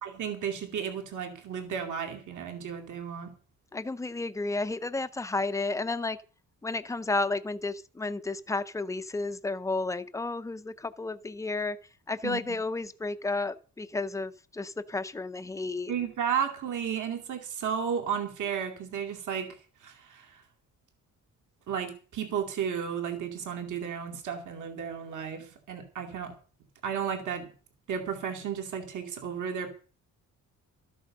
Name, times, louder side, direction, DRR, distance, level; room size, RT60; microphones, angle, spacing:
voice 1, 0.0-3.3 12.2-12.4 15.9-19.6 19.8-20.4 21.7-26.3 26.8-27.5 27.9-29.7, right 7 dB, 65° right, 2.5 m, -33 dB
voice 2, 3.7-6.2 6.6-11.8 12.1-15.9, left 3 dB, 10° left, 0.6 m, -32 dB
13.0 x 9.1 x 6.5 m
wide cardioid pair, 170°, 33 cm